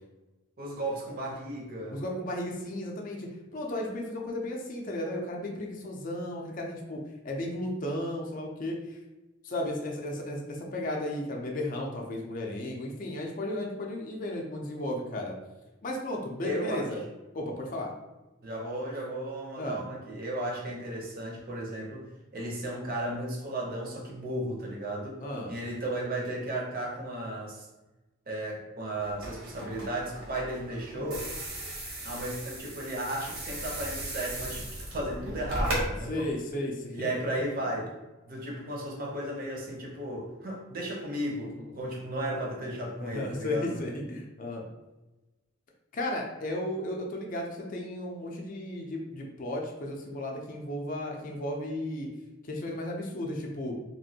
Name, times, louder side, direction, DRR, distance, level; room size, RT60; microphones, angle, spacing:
voice 1, 0.6-2.0 16.4-16.9 18.4-22.1 22.3-25.2 25.4-27.7 28.3-31.3 32.0-36.3 36.9-37.9 38.3-43.8, right 1 dB, 45° right, -1 dB, 0.7 m, -34 dB
voice 2, 1.9-9.0 9.4-15.3 15.8-17.0 17.3-17.9 19.6-19.8 25.2-25.5 30.9-31.1 36.1-37.3 43.0-44.7 45.9-52.1 52.4-53.7, left 1 dB, 40° left, 0 dB, 0.5 m, -34 dB
sound 1, 29.0-35.8, right 1 dB, 70° right, 1.0 m, -37 dB
2.9 x 2.5 x 2.7 m, 1.1 s
head